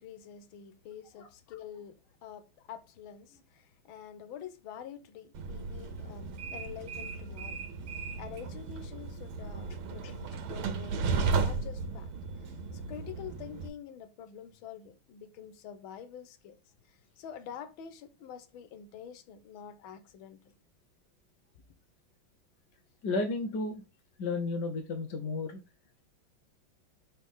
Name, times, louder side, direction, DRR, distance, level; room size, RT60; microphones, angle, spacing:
voice 1, 0.0-7.6 8.2-12.1 12.4-16.6 16.9-20.5, left 8 dB, 80° left, 1.7 m, -47 dB
Train, 5.3-13.7, right 4 dB, 85° right, 1.8 m, -35 dB
voice 2, 23.0-23.8 24.2-25.6, left 3 dB, 60° left, 1.6 m, -32 dB
7.3 x 4.2 x 3.7 m
omnidirectional pair, 2.2 m